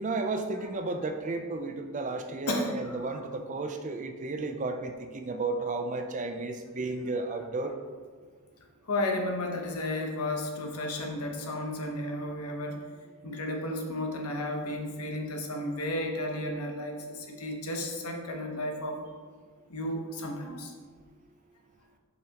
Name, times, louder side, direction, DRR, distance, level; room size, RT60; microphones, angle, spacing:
voice 1, 0.0-7.7, right 3 dB, 35° right, 6 dB, 0.4 m, -33 dB
voice 2, 2.5-3.3 7.6-7.7 8.9-12.8 13.2-19.0 19.7-20.7, left 1 dB, 85° left, 2 dB, 1.0 m, -33 dB
7.6 x 5.6 x 2.9 m, 1.5 s
head